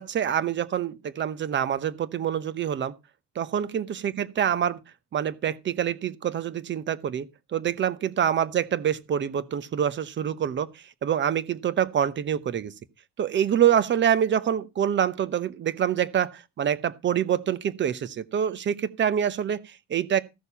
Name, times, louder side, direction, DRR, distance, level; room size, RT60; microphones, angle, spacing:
voice 1, 0.0-2.9 3.4-4.8 5.1-10.7 11.0-12.7 13.2-20.2, right 9 dB, 40° right, 0.9 m, -26 dB
14.0 x 6.5 x 5.6 m
cardioid pair, 155°, 29 cm